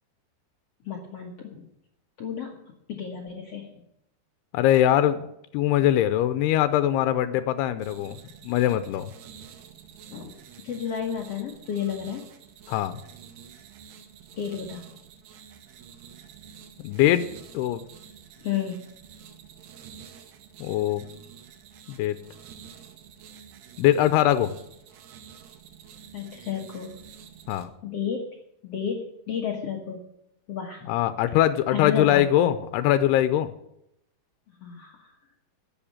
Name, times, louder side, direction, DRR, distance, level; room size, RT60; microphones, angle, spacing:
voice 1, 0.8-1.7 2.2-2.5 3.0-3.7 10.1-10.3 10.6-12.2 14.3-15.0 18.4-18.9 26.1-27.0 27.8-28.3 28.6-30.1 30.5-30.9 31.7-32.2 34.6-35.1, left 8 dB, 60° left, 0 dB, 1.7 m, -32 dB
voice 2, 4.5-5.3 5.5-8.2 8.4-9.1 12.7-13.0 16.8-17.3 17.5-17.8 20.6-21.0 21.9-22.2 23.8-24.5 27.5-27.7 30.9-33.5, left 12 dB, 85° left, 12 dB, 2.7 m, -22 dB
sound 1, 7.8-27.6, right 8 dB, 90° right, 3.2 m, -48 dB
12.0 x 7.5 x 8.7 m, 0.80 s
omnidirectional pair, 4.6 m